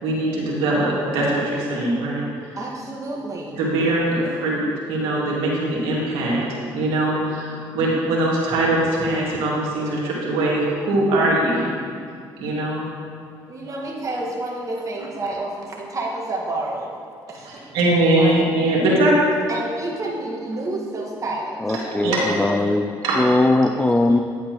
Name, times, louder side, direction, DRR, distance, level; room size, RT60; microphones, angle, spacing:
voice 1, 0.0-2.6 3.5-11.7 12.4-12.8 13.7-13.8 17.4-19.3 21.8-22.2 23.0-23.2, right 1 dB, 85° right, -5 dB, 2.2 m, -21 dB
voice 2, 2.6-3.9 13.5-16.9 17.3-17.5 18.1-18.5 19.5-21.6 22.2-22.5, right 2 dB, 35° right, -2 dB, 1.7 m, -29 dB
voice 3, 21.6-24.2, left 2 dB, 15° left, 7 dB, 0.4 m, -20 dB
10.0 x 8.3 x 3.1 m, 2.2 s
supercardioid pair, 75°, 9 cm